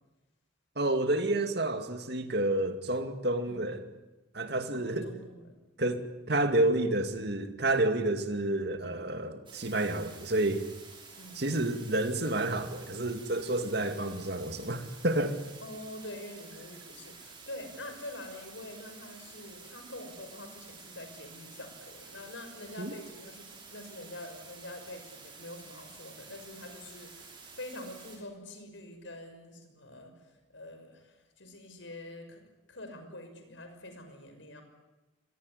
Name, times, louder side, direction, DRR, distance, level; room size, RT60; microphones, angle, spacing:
voice 1, 0.8-3.8 4.3-5.2 5.8-10.6 11.3-15.4 22.8-22.9, right 1 dB, 55° right, 7 dB, 2.4 m, -29 dB
voice 2, 4.7-5.6 11.2-11.4 15.6-30.1 30.5-32.4 32.7-34.6, left 1 dB, 70° left, 7 dB, 5.9 m, -46 dB
sound 1, 9.5-28.2, right 4 dB, 25° right, 6.3 m, -50 dB
25.5 x 20.5 x 9.9 m, 1.1 s
head